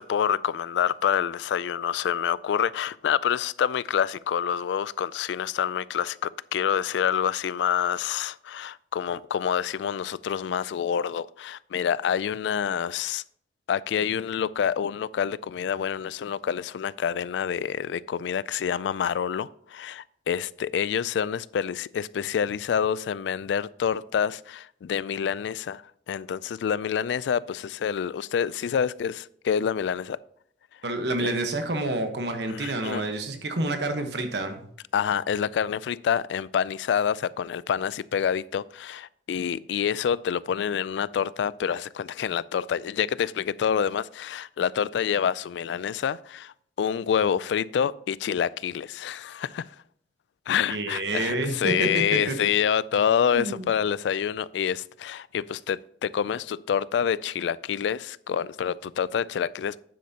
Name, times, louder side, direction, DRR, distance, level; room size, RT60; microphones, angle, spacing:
voice 1, 0.0-13.2 13.7-30.2 31.2-31.3 32.5-33.1 34.9-49.7 50.5-59.8, left 8 dB, 80° left, 0.3 m, -27 dB
voice 2, 30.8-34.6 50.7-52.3 53.3-53.6, right 2 dB, 75° right, 1.1 m, -28 dB
9.4 x 7.8 x 2.8 m
head